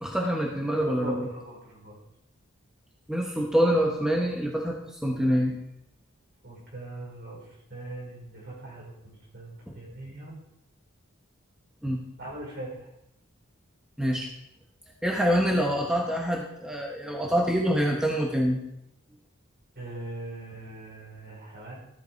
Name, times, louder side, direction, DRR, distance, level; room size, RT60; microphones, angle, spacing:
voice 1, 0.0-1.3 3.1-5.6 11.8-12.0 14.0-14.3 15.0-18.6, equal, 5° right, -2 dB, 1.2 m, -25 dB
voice 2, 0.8-2.0 6.4-10.3 12.2-12.9 19.7-21.7, right 1 dB, 55° right, -3 dB, 4.8 m, -40 dB
13.5 x 8.2 x 4.6 m, 0.79 s
head